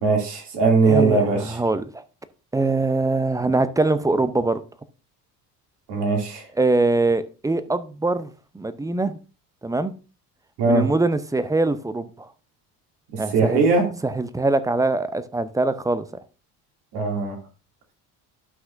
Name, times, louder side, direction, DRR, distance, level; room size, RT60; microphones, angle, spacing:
voice 1, 0.0-1.6 5.9-6.4 10.6-10.9 13.1-13.9 16.9-17.4, right 3 dB, 55° right, 2.7 m, -20 dB
voice 2, 0.8-2.0 2.5-4.6 6.6-8.3 8.5-9.2 9.6-9.9 10.7-12.3 13.2-13.6 14.0-16.0, right 2 dB, 5° right, 0.6 m, -23 dB
12.5 x 5.7 x 2.6 m
figure-of-eight pair, 60°, 46 cm